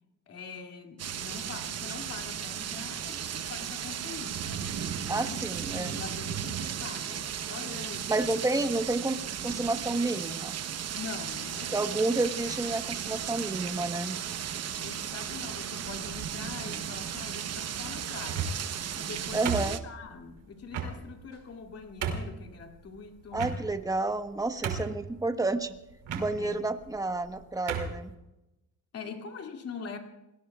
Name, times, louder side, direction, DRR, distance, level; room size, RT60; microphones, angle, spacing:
voice 1, 0.3-5.5 5.7-8.3 10.9-12.0 14.8-18.6 19.0-23.5 26.4-26.7 28.9-30.0, left 5 dB, 50° left, 3 dB, 2.6 m, -43 dB
sound 1, 1.0-19.8, right 9 dB, 55° right, 1.0 m, -35 dB
voice 2, 5.1-6.0 8.1-10.5 11.7-14.2 16.7-16.8 19.3-19.8 23.3-25.7 26.1-28.1, right 2 dB, 10° right, 7 dB, 1.2 m, -30 dB
sound 2, 18.2-18.7 19.5-20.1 20.7-20.9 21.5-21.6 22.0-22.4 23.3-23.9 24.3-24.4 24.6-25.1 26.0-26.3 27.1-27.3 27.7-28.0, right 6 dB, 80° right, 2.6 m, -32 dB
29.0 x 19.5 x 2.4 m, 0.95 s
cardioid pair, 110°, 31 cm